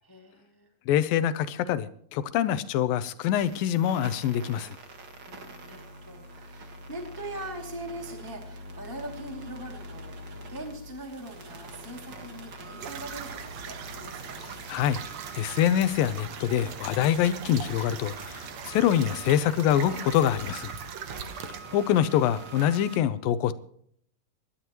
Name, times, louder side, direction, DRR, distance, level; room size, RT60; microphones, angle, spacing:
voice 1, 0.0-0.7 5.3-14.5, right 1 dB, 10° left, 1.5 m, -42 dB
voice 2, 0.9-4.8 14.7-15.0 15.3-20.7 21.7-23.5, left 10 dB, 80° left, 2.4 m, -25 dB
sound 1, 3.3-23.0, right 2 dB, 45° right, 1.5 m, -44 dB
sound 2, 12.8-21.6, right 7 dB, 60° right, 2.0 m, -41 dB
25.5 x 12.0 x 3.1 m
omnidirectional pair, 4.2 m